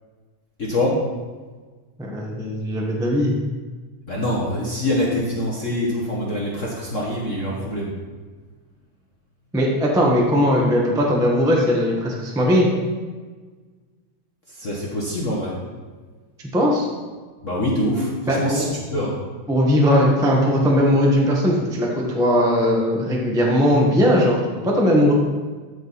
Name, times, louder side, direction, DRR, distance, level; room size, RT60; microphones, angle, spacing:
voice 1, 0.6-1.0 4.1-7.9 14.6-15.6 17.4-19.1, left 1 dB, 55° left, -4 dB, 0.8 m, -24 dB
voice 2, 2.0-3.3 9.5-12.7 16.5-16.9 18.3-18.6 19.5-25.1, equal, 5° right, -2 dB, 0.4 m, -19 dB
14.0 x 5.2 x 4.2 m, 1.4 s
omnidirectional pair, 3.3 m